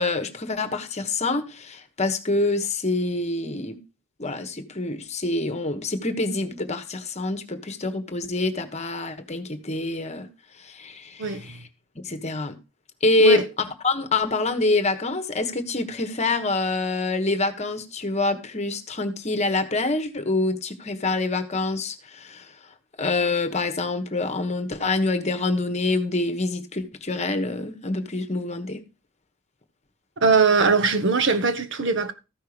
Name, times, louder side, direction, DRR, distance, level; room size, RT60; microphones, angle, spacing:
voice 1, 0.0-3.8 4.2-10.3 10.6-11.6 11.9-12.6 13.0-22.5 23.0-28.8, left 2 dB, 30° left, 1.2 m, -26 dB
voice 2, 11.2-11.6 13.2-13.4 30.2-32.1, right 4 dB, 60° right, 1.0 m, -21 dB
14.0 x 5.6 x 4.9 m
head